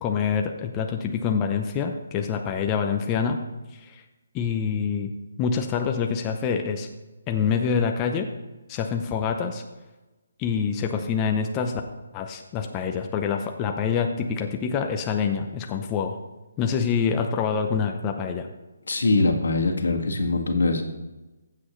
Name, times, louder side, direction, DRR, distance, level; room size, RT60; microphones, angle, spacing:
voice 1, 0.0-3.4 3.7-4.0 4.3-5.1 5.4-6.9 7.3-8.3 8.7-9.6 10.4-11.8 12.1-16.2 16.6-18.5, left 6 dB, 15° left, 4 dB, 0.6 m, -26 dB
voice 2, 18.9-20.8, left 3 dB, 80° left, 3 dB, 1.7 m, -22 dB
15.0 x 7.7 x 3.1 m, 1.1 s
hypercardioid pair, 170°, 0 cm